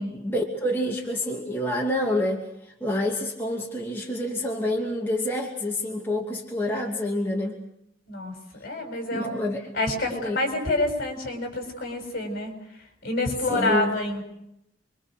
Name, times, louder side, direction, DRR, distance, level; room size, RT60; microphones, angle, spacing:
voice 1, 0.0-2.4 2.8-7.6 9.1-9.6 10.1-10.4 13.5-13.9, left 1 dB, 10° left, -2 dB, 2.6 m, -27 dB
voice 2, 8.6-9.3 9.7-12.5 13.0-14.2, left 2 dB, 50° left, 3 dB, 7.3 m, -27 dB
27.5 x 24.0 x 6.5 m, 0.81 s
head